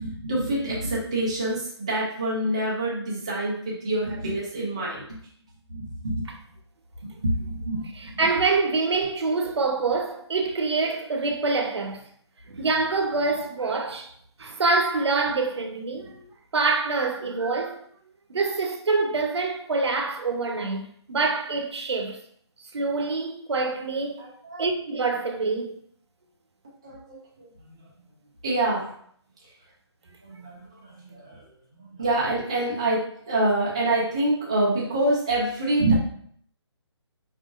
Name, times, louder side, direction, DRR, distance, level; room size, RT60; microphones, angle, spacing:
voice 1, 0.0-5.0 5.7-6.2 7.2-7.8 8.1-8.2 24.2-24.7 26.8-27.5 28.4-28.9 30.2-31.4 32.0-35.9, right 1 dB, 10° right, 0.4 m, -26 dB
voice 2, 8.0-12.0 12.5-14.1 14.4-17.8 18.3-22.2 22.7-24.2 24.6-25.8, right 3 dB, 65° right, 0.8 m, -26 dB
4.8 x 3.7 x 2.4 m
hypercardioid pair, 175°, 15 cm